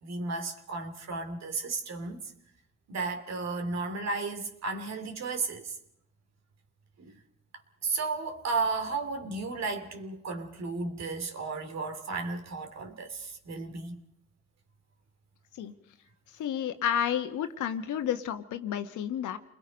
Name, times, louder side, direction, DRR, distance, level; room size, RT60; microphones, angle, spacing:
voice 1, 0.0-2.3 2.9-5.7 7.0-7.2 7.8-14.0, right 3 dB, 60° right, 3.0 m, -34 dB
voice 2, 16.4-19.4, left 9 dB, 80° left, 1.5 m, -31 dB
29.0 x 21.0 x 5.3 m
cardioid pair, 90°, 30 cm